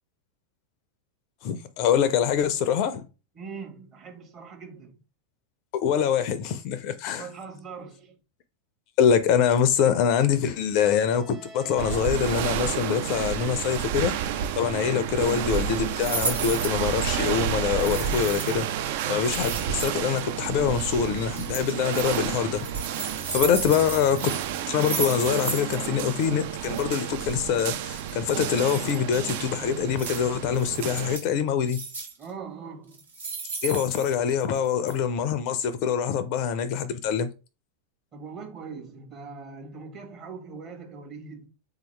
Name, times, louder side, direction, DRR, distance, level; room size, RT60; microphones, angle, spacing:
voice 1, 1.4-3.0 5.7-7.3 9.0-14.1 14.6-22.6 23.1-24.2 24.7-31.8 33.6-37.3, left 8 dB, 45° left, 0.4 m, -24 dB
voice 2, 3.3-5.0 7.2-8.2 14.7-14.9 23.4-23.8 32.2-33.0 38.1-41.5, right 5 dB, 30° right, 1.2 m, -41 dB
sound 1, 11.0-15.7, right 6 dB, 15° right, 0.8 m, -45 dB
sound 2, 11.8-31.2, right 9 dB, 50° right, 0.3 m, -30 dB
sound 3, 16.0-16.8 17.8-18.6 19.2-20.2 21.3-22.2 22.5-25.9 26.1-26.2 26.5-26.8 27.9-29.0 30.0-30.2 30.5-31.3 31.7-32.2 32.9-34.6 34.9-35.0, right 4 dB, 70° right, 1.4 m, -34 dB
3.6 x 2.8 x 3.2 m
figure-of-eight pair, 90°, 0 cm